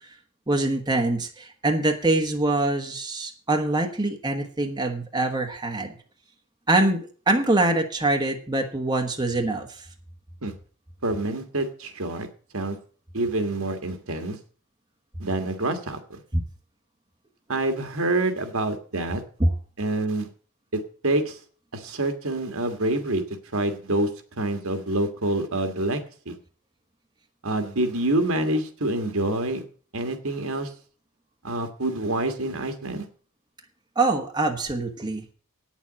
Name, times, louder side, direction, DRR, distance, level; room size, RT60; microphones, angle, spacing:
voice 1, 0.5-5.9 6.7-9.7 19.4-19.5 33.9-35.2, right 2 dB, 20° right, 3 dB, 1.3 m, -24 dB
voice 2, 11.0-12.3 12.5-12.8 13.1-14.4 15.2-16.2 17.5-19.2 19.8-20.3 20.7-21.4 21.7-23.2 23.5-24.1 24.4-26.0 26.2-26.3 27.4-29.6 29.9-30.7 31.4-33.1, right 2 dB, 65° right, 7 dB, 1.7 m, -26 dB
9.0 x 7.2 x 8.6 m, 0.42 s
head